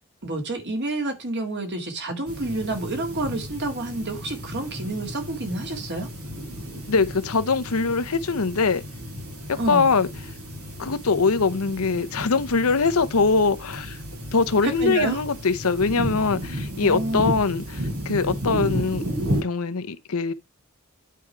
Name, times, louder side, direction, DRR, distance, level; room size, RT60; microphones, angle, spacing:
voice 1, 0.2-6.1 9.6-9.9 14.6-15.2 16.8-17.2, right 2 dB, 50° right, 2.1 m, -28 dB
sound 1, 2.2-19.4, equal, 80° right, 4.2 m, -33 dB
voice 2, 6.9-8.8 9.5-10.1 10.8-14.0 14.3-19.0 19.4-20.3, left 4 dB, 75° left, 0.8 m, -22 dB
9.3 x 4.7 x 4.5 m
head